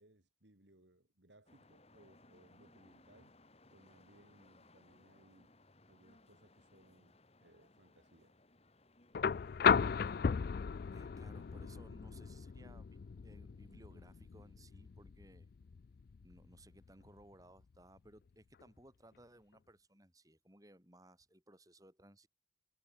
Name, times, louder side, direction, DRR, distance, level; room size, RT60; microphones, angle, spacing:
voice 1, 0.0-3.3 3.7-5.5 5.9-8.3, right 1 dB, 65° right, 3.0 m, -66 dB
sound 1, 1.5-11.6, left 2 dB, 35° left, 2.2 m, -65 dB
sound 2, 9.1-17.2 18.6-18.7, left 6 dB, 50° left, 0.4 m, -36 dB
voice 2, 10.9-15.5 16.2-22.3, right 1 dB, 20° right, 6.4 m, -61 dB
head